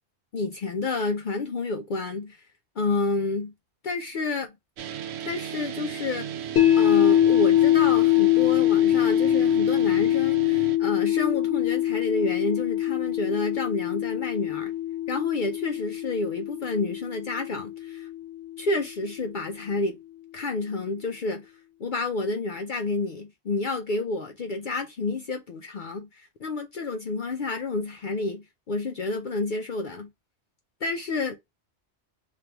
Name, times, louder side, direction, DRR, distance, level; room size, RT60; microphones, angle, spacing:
voice 1, 0.3-2.5 2.8-3.5 3.8-4.5 5.2-6.3 6.8-14.7 15.1-18.1 18.6-20.0 20.3-21.5 21.8-30.1 30.8-31.4, left 3 dB, 55° left, 0.7 m, -29 dB
sound 1, 4.8-10.8, right 9 dB, 75° right, 0.8 m, -35 dB
sound 2, 6.6-18.7, left 13 dB, 90° left, 1.2 m, -23 dB
3.4 x 3.3 x 2.8 m
omnidirectional pair, 1.2 m